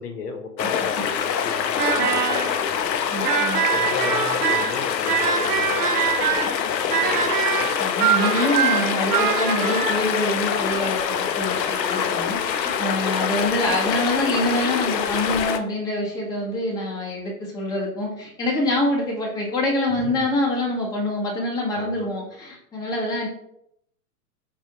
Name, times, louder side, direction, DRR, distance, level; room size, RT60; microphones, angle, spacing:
voice 1, 0.0-3.0 3.7-7.7 19.9-20.3 21.7-22.1, left 4 dB, 65° left, 4 dB, 0.9 m, -35 dB
sound 1, 0.6-15.6, left 8 dB, 85° left, 0.6 m, -25 dB
voice 2, 1.2-1.5 3.1-3.7 7.8-23.3, left 1 dB, 10° left, -4 dB, 0.8 m, -26 dB
sound 2, 1.8-2.6 3.2-6.6 6.9-10.0, right 8 dB, 65° right, 0.6 m, -24 dB
5.2 x 2.4 x 2.8 m, 0.75 s
hypercardioid pair, 115°, 49 cm